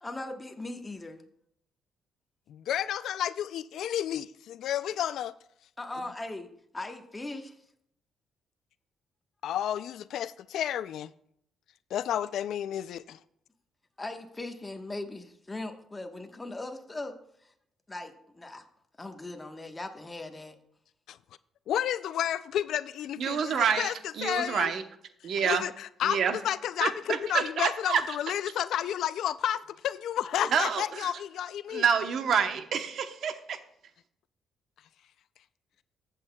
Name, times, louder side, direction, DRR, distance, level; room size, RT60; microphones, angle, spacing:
voice 1, 0.0-1.2 5.8-6.5 6.7-7.5 14.0-17.1 17.9-18.6 19.0-20.6, left 2 dB, 20° left, 1.2 m, -39 dB
voice 2, 2.5-5.3 9.4-11.1 11.9-13.2 21.1-21.2 21.7-24.7 25.4-31.8, left 10 dB, 75° left, 0.3 m, -31 dB
voice 3, 23.2-24.8 25.2-25.6 26.0-26.4 26.8-28.0 30.5-31.1 31.7-33.6, right 7 dB, 65° right, 0.9 m, -28 dB
14.5 x 8.0 x 2.3 m
cardioid pair, 90°, 0 cm